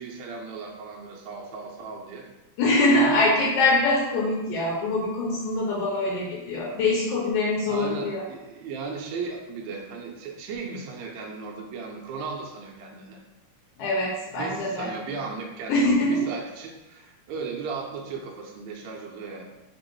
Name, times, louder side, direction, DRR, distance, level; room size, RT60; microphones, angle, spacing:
voice 1, 0.0-2.3 3.0-3.1 6.1-6.2 7.7-13.2 14.4-19.5, right 4 dB, 80° right, -1 dB, 1.7 m, -36 dB
voice 2, 2.6-8.2 13.8-14.9 15.7-16.3, left 2 dB, 85° left, -4 dB, 2.4 m, -23 dB
5.3 x 2.9 x 3.0 m, 1.0 s
omnidirectional pair, 3.8 m